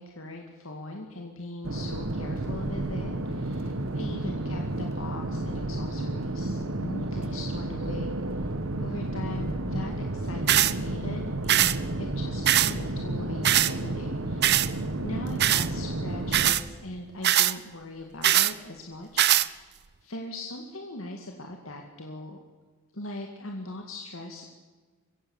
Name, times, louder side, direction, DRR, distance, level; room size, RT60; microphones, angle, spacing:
voice 1, 0.0-8.5 8.8-14.7 15.0-19.7 20.0-22.4 22.9-24.4, left 2 dB, 75° left, 2 dB, 2.2 m, -40 dB
sound 1, 1.6-16.5, right 1 dB, 85° right, 1.7 m, -31 dB
sound 2, 10.5-10.7 11.5-11.8 12.5-12.7 13.4-13.7 14.4-14.7 15.4-15.7 16.3-16.6 17.2-17.5 18.2-18.5 19.2-19.5, right 13 dB, 50° right, 0.7 m, -21 dB
25.5 x 15.5 x 7.2 m, 1.4 s
head